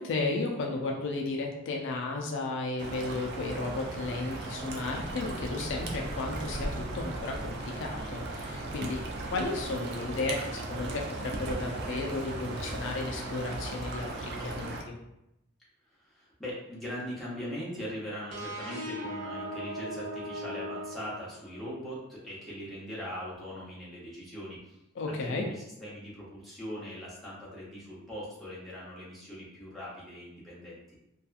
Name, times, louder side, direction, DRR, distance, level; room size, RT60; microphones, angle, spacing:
voice 1, 0.0-15.0 25.0-25.5, left 3 dB, 60° left, 1 dB, 0.3 m, -34 dB
sound 1, 2.8-14.8, right 2 dB, 55° right, 0.4 m, -37 dB
voice 2, 15.9-24.8 25.1-31.0, equal, ahead, -8 dB, 0.8 m, -41 dB
sound 2, 18.3-21.8, equal, 85° right, 0.7 m, -39 dB
2.7 x 2.3 x 2.4 m, 0.86 s
head